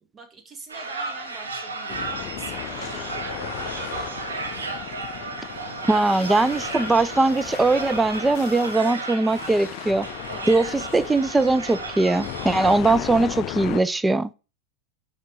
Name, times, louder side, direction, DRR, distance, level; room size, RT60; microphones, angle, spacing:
voice 1, 0.1-3.5 5.4-6.5 10.3-10.9 12.6-13.3, right 3 dB, 25° right, 1.8 m, -45 dB
sound 1, 0.7-12.8, right 3 dB, 90° right, 1.8 m, -34 dB
sound 2, 1.9-13.8, left 17 dB, 55° left, 0.3 m, -36 dB
voice 2, 5.9-10.1 10.5-14.3, right 2 dB, 10° right, 0.5 m, -21 dB
5.8 x 4.3 x 6.4 m
hypercardioid pair, 95°, 0 cm